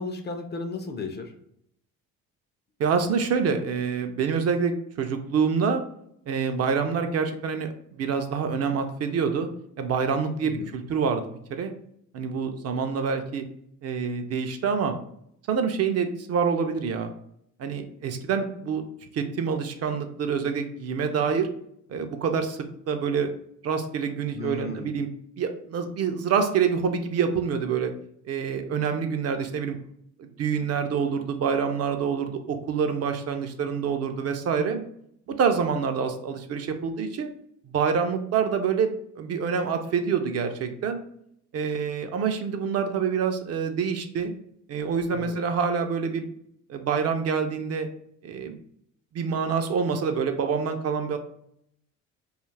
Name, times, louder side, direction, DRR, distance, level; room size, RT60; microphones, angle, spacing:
voice 1, 0.0-1.3 10.4-10.7 24.3-24.9 45.1-45.4, left 3 dB, 30° left, 5 dB, 0.4 m, -34 dB
voice 2, 2.8-5.8 6.3-9.5 9.8-11.2 11.5-11.7 12.1-13.4 13.8-15.0 15.5-17.1 17.6-18.8 19.1-21.5 21.9-23.3 23.6-25.1 25.4-27.9 28.2-29.8 30.2-34.8 35.4-37.3 37.7-41.0 41.5-44.3 44.7-46.3 46.7-47.9 48.2-48.6 49.1-51.2, right 6 dB, 45° right, 6 dB, 0.4 m, -26 dB
2.4 x 2.3 x 3.2 m, 0.72 s
supercardioid pair, 85°, 34 cm